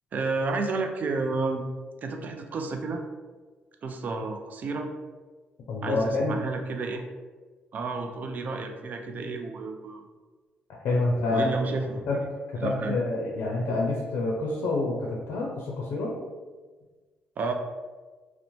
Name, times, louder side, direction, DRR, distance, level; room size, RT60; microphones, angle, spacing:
voice 1, 0.1-1.6 2.0-3.0 3.8-4.9 5.8-7.1 7.7-10.0 11.3-12.0 12.6-13.0 17.4-17.5, right 3 dB, 50° right, 5 dB, 0.3 m, -31 dB
voice 2, 5.7-6.4 10.8-11.5 12.1-12.2 12.6-16.1, left 2 dB, 75° left, -2 dB, 0.4 m, -27 dB
2.6 x 2.0 x 3.0 m, 1.3 s
cardioid pair, 95°, 4 cm